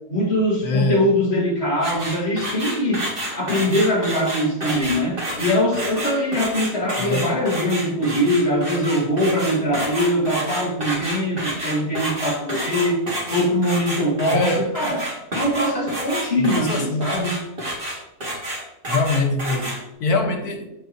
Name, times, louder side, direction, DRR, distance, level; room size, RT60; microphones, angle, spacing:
voice 1, 0.1-3.0 3.3-13.0 13.3-15.0 15.3-17.3, equal, 45° left, -3 dB, 2.1 m, -22 dB
voice 2, 0.6-1.0 7.0-7.3 14.3-14.7 16.4-17.2 18.9-20.7, left 2 dB, 85° left, 3 dB, 1.7 m, -24 dB
sound 1, 1.8-19.8, right 1 dB, 35° right, 2.3 m, -29 dB
13.5 x 4.7 x 2.8 m, 0.91 s
omnidirectional pair, 1.6 m